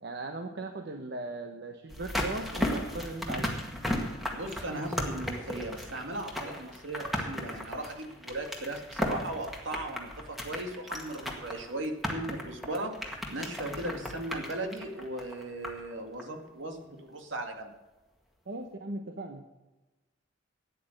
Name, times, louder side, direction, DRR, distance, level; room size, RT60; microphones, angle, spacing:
voice 1, 0.0-3.6 18.5-19.4, right 2 dB, 60° right, 5 dB, 1.0 m, -38 dB
sound 1, 1.9-15.9 16.2-16.3, left 1 dB, ahead, 1.8 m, -36 dB
voice 2, 4.3-13.0 13.3-17.7, right 1 dB, 75° right, 4 dB, 2.1 m, -37 dB
13.0 x 9.4 x 6.5 m, 1.1 s
head